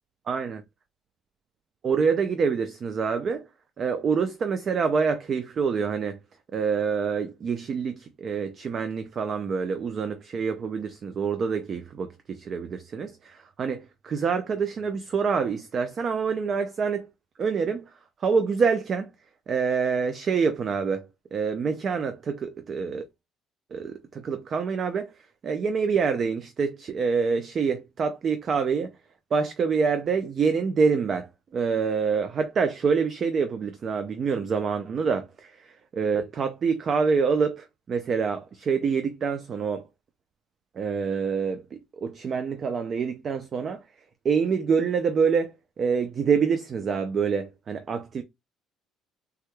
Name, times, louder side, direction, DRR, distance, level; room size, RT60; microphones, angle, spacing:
voice 1, 0.3-0.6 1.8-3.4 3.8-6.2 6.5-17.1 17.4-17.8 18.2-19.1 19.5-23.0 23.7-25.1 25.4-28.9 29.3-31.3 31.5-39.8 40.8-43.8 44.2-48.2, right 5 dB, 40° right, 0.3 m, -26 dB
3.3 x 2.1 x 3.1 m
cardioid pair, 135°, 0 cm